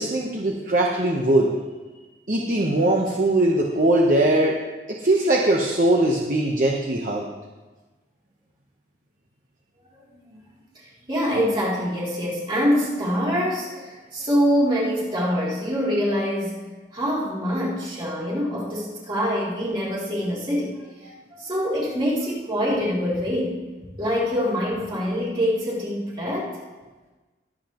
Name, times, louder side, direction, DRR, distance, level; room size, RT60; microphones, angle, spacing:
voice 1, 0.0-1.5 2.3-4.6 4.9-7.3, right 1 dB, 45° right, -1 dB, 1.0 m, -20 dB
voice 2, 10.7-16.6 16.9-23.6 24.0-26.6, equal, 25° right, -6 dB, 3.1 m, -25 dB
22.0 x 7.6 x 3.0 m, 1.2 s
head